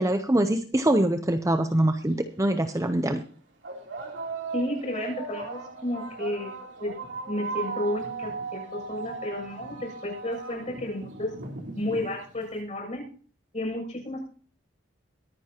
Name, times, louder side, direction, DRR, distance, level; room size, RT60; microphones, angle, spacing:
voice 1, 0.0-3.2, right 1 dB, 15° right, 7 dB, 0.7 m, -24 dB
sound 1, 1.6-1.7 2.6-2.8 3.6-12.5, right 4 dB, 65° right, 3.2 m, -37 dB
voice 2, 4.5-6.5 6.8-6.9 7.3-11.3 11.8-13.0 13.5-14.2, left 1 dB, 35° left, 0 dB, 7.4 m, -32 dB
23.0 x 9.8 x 2.9 m, 0.43 s
head